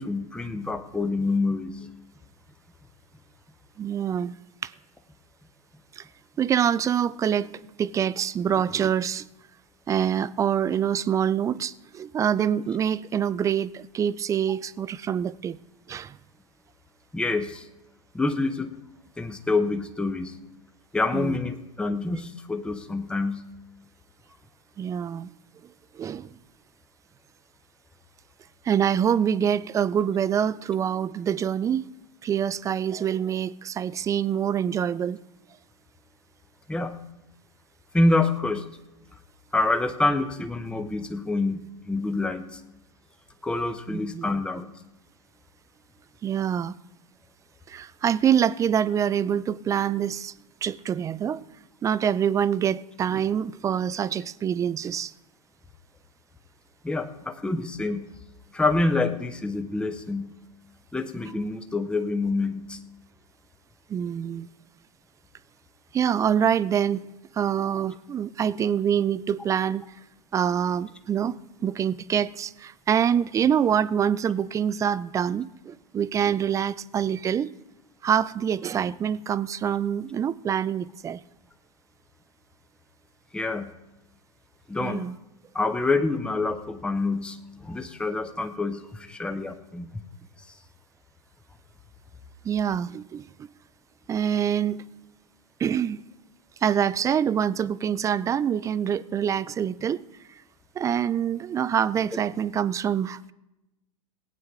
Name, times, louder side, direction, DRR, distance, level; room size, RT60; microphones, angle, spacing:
voice 1, 0.0-1.8 17.1-17.7 18.1-18.7 19.2-20.4 20.9-23.4 36.7-37.0 37.9-38.7 39.5-42.6 43.4-44.7 56.8-58.1 58.5-60.3 60.9-62.8 83.3-83.7 84.7-85.1 85.5-90.0, left 3 dB, 5° left, 0.8 m, -27 dB
voice 2, 3.8-4.3 4.6-4.7 6.0-6.1 6.4-9.3 9.9-15.6 15.9-16.2 21.1-21.4 24.8-25.3 25.9-26.3 28.6-31.9 32.2-35.2 43.9-44.3 46.2-46.7 47.7-50.3 50.6-51.4 51.8-55.1 63.9-64.5 65.9-67.1 67.3-69.8 70.3-77.5 78.0-81.2 84.8-85.2 92.4-93.5 94.1-94.9 95.6-96.0 96.6-100.0 100.8-103.3, right 8 dB, 15° right, 0.3 m, -25 dB
18.0 x 9.0 x 3.7 m
hypercardioid pair, 110°, 20 cm